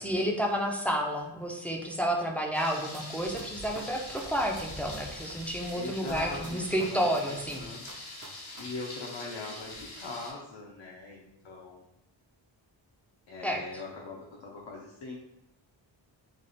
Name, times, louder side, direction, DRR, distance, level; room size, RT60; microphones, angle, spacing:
voice 1, 0.0-7.7 13.4-13.6, equal, 5° left, 0 dB, 0.4 m, -30 dB
Thunder, 2.5-10.3, left 1 dB, 90° left, 1.2 m, -43 dB
sound 1, 2.9-3.0 3.4-5.3 5.7-8.6 8.9-9.0, right 3 dB, 40° right, 0.6 m, -47 dB
voice 2, 5.7-7.8 8.3-11.8 13.3-15.2, left 3 dB, 65° left, -3 dB, 0.7 m, -41 dB
3.3 x 2.4 x 3.9 m, 0.89 s
wide cardioid pair, 100°, 47 cm